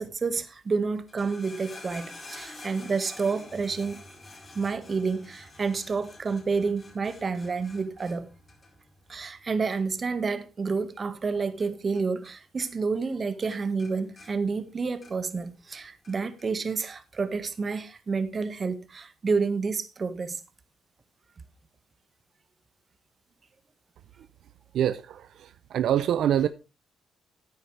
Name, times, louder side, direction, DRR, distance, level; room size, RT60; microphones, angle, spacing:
voice 1, 0.0-4.0 4.5-8.3 9.1-20.4, right 4 dB, 35° right, 1.6 m, -29 dB
sound 1, 1.0-12.3 12.6-13.1 13.4-15.4 15.7-16.5 17.2-17.3, left 2 dB, 35° left, 4.5 m, -49 dB
voice 2, 24.7-26.5, right 10 dB, 70° right, 0.6 m, -25 dB
14.0 x 9.3 x 3.3 m
cardioid pair, 90°, 0 cm